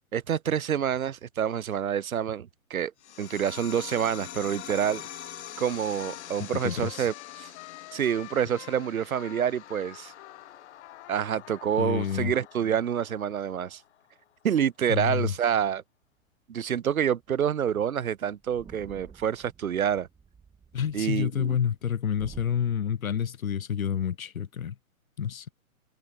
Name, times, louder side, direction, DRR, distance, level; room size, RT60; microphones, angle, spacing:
voice 1, 0.1-2.9 3.2-5.0 5.6-7.5 7.9-10.1 11.1-13.8 14.4-15.8 16.5-20.1 20.9-21.6, right 9 dB, 75° right, 1.9 m, -27 dB
sound 1, 3.0-14.0, left 11 dB, 50° left, 2.6 m, -45 dB
Trumpet, 4.0-12.2, left 30 dB, 30° left, 5.2 m, -49 dB
voice 2, 6.5-7.1 11.8-12.3 14.9-15.3 20.7-24.7 25.2-25.5, left 8 dB, 70° left, 3.2 m, -29 dB
sound 2, 17.2-17.4 17.7-17.8 18.0-22.5, right 5 dB, 10° right, 7.6 m, -51 dB
hypercardioid pair, 150°, 43 cm